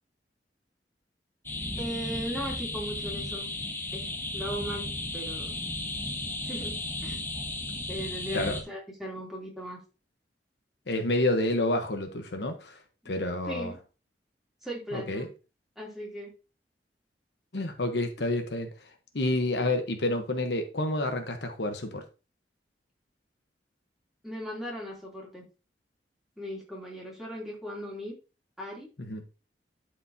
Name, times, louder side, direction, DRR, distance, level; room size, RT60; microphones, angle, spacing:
sound 1, 1.5-8.6, left 2 dB, 15° left, 1.0 m, -34 dB
voice 1, 1.8-3.5 3.9-5.6 6.4-7.2 7.9-9.8 13.4-13.8 14.6-15.3 15.7-16.3 19.5-19.7 24.2-25.4 26.4-28.1 28.6-28.9, equal, ahead, -4 dB, 3.0 m, -38 dB
voice 2, 10.9-12.8 13.0-13.7 14.9-15.3 17.5-18.7 19.1-22.0 29.1-29.2, left 2 dB, 70° left, 5 dB, 1.1 m, -29 dB
11.5 x 5.1 x 2.8 m, 0.31 s
head